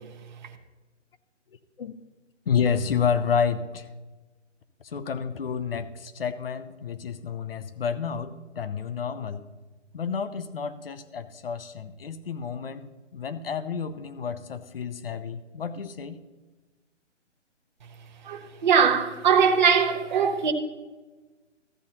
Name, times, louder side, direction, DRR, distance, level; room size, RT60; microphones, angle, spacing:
voice 1, 2.5-3.9 4.8-9.4 9.9-16.2, left 6 dB, 50° left, 0.8 m, -30 dB
voice 2, 18.2-20.5, right 6 dB, 40° right, 1.0 m, -21 dB
14.0 x 9.2 x 2.9 m
hypercardioid pair, 165°, 37 cm